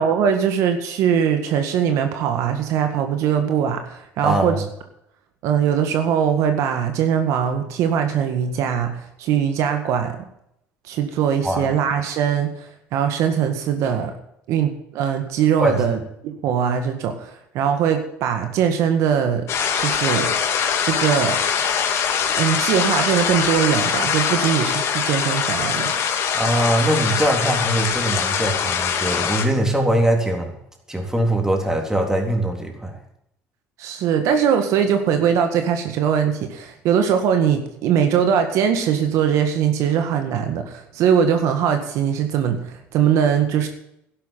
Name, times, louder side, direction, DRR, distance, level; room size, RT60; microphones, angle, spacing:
voice 1, 0.0-4.6 5.4-10.1 10.9-12.5 12.9-14.1 14.5-19.4 19.8-20.3 20.8-21.4 22.3-25.9 33.8-43.7, right 8 dB, 75° right, 6 dB, 1.8 m, -21 dB
voice 2, 4.2-4.6 11.4-11.7 15.6-15.8 26.3-30.5 30.9-33.0, right 1 dB, 10° right, 2 dB, 3.7 m, -21 dB
sound 1, 19.5-29.4, left 7 dB, 60° left, 2.5 m, -22 dB
12.0 x 11.0 x 5.7 m, 0.75 s
cardioid pair, 105°, 5 cm